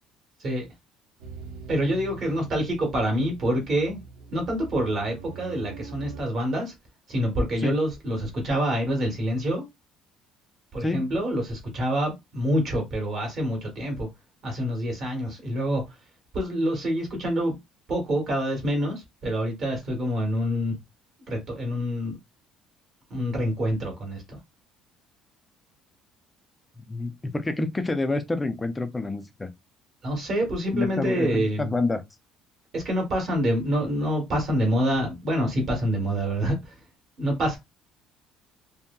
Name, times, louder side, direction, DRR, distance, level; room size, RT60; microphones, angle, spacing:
sound 1, 1.2-6.2, right 4 dB, 75° right, 0.8 m, -42 dB
voice 1, 1.7-4.0 4.3-6.7 7.1-9.6 10.7-14.1 14.4-15.8 16.3-17.6 17.9-20.7 21.3-22.1 23.1-24.4 30.0-31.7 32.7-36.8 37.2-37.6, equal, 35° right, 1.0 m, -26 dB
voice 2, 26.9-29.5 30.7-32.0, left 2 dB, 10° left, 0.3 m, -28 dB
2.7 x 2.7 x 2.2 m
cardioid pair, 175°, 0 cm